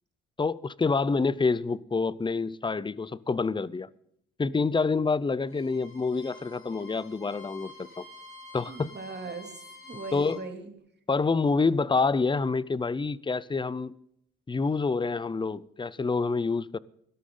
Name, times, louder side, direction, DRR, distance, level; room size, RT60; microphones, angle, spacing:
voice 1, 0.4-3.9 4.4-8.0 8.5-8.9 10.1-10.4 11.1-13.9 14.5-16.8, left 4 dB, 15° left, 0.6 m, -27 dB
Bowed string instrument, 5.4-10.4, left 2 dB, 45° left, 6.9 m, -49 dB
voice 2, 8.7-10.7, right 4 dB, 35° right, 2.9 m, -40 dB
17.5 x 12.5 x 3.9 m
cardioid pair, 90°, 30 cm